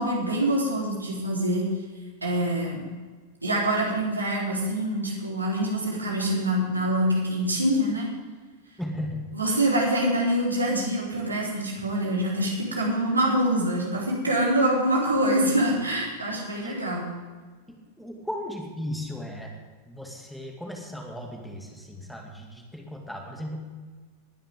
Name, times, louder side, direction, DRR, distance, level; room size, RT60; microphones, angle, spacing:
voice 1, 0.0-1.7 2.2-2.8 3.4-8.1 9.3-17.1, right 1 dB, 80° right, -4 dB, 3.8 m, -25 dB
voice 2, 8.8-9.3 16.6-16.8 17.7-19.5 19.9-23.6, left 1 dB, ahead, 0 dB, 2.2 m, -36 dB
20.5 x 10.5 x 3.7 m, 1.5 s
figure-of-eight pair, 90°, 0 cm